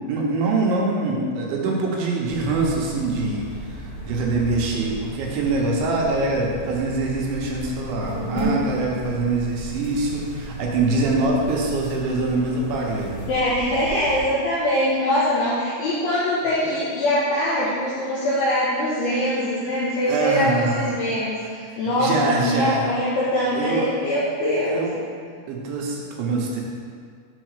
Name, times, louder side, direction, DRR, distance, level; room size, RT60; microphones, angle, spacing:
voice 1, 0.1-13.3 20.1-20.9 22.0-22.9 23.5-24.0 24.5-25.0 25.5-26.6, right 2 dB, 75° right, -2 dB, 3.0 m, -24 dB
sound 1, 2.2-14.2, right 1 dB, 60° left, 3.7 m, -34 dB
voice 2, 13.3-24.8, left 1 dB, 75° left, -8 dB, 2.3 m, -23 dB
8.0 x 4.2 x 6.5 m, 2.1 s
omnidirectional pair, 5.8 m